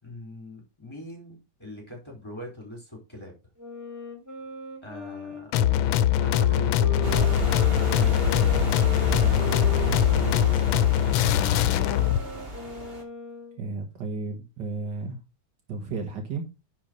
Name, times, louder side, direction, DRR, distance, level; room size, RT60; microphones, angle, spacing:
voice 1, 0.0-3.3 4.8-5.7 6.2-7.2 7.8-8.7 9.0-10.7, left 1 dB, 15° left, 4.3 m, -43 dB
Wind instrument woodwind instrument, 3.6-13.6, right 1 dB, 10° right, 3.9 m, -39 dB
sound 1, 5.5-12.2, left 11 dB, 85° left, 1.4 m, -22 dB
sound 2, 7.0-13.0, right 1 dB, 30° right, 2.9 m, -31 dB
voice 2, 13.6-15.2 15.7-16.5, right 3 dB, 65° right, 2.0 m, -33 dB
10.5 x 4.6 x 5.3 m
omnidirectional pair, 2.1 m